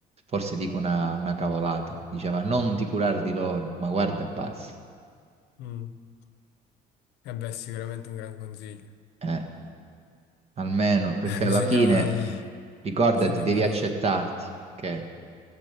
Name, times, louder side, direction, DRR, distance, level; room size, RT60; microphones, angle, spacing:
voice 1, 0.3-4.7 9.2-9.4 10.6-12.1 12.8-14.5 14.8-15.0, right 3 dB, 40° right, 5 dB, 1.6 m, -25 dB
voice 2, 5.6-6.0 7.2-8.9 11.3-12.4 13.2-13.8, left 10 dB, 90° left, 12 dB, 0.7 m, -33 dB
15.0 x 7.3 x 8.2 m, 2.1 s
cardioid pair, 110°, 17 cm